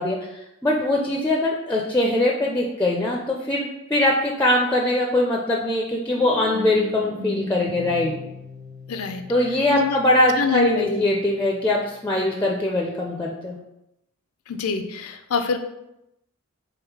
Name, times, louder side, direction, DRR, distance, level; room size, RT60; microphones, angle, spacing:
voice 1, 0.0-8.1 9.3-13.6, left 1 dB, 10° left, -1 dB, 0.4 m, -22 dB
sound 1, 6.1-12.0, left 1 dB, 40° right, 0.6 m, -38 dB
voice 2, 8.9-9.2 9.7-10.0 10.4-11.0 14.5-15.6, left 4 dB, 90° left, 8 dB, 0.5 m, -25 dB
3.6 x 3.1 x 4.7 m, 0.86 s
head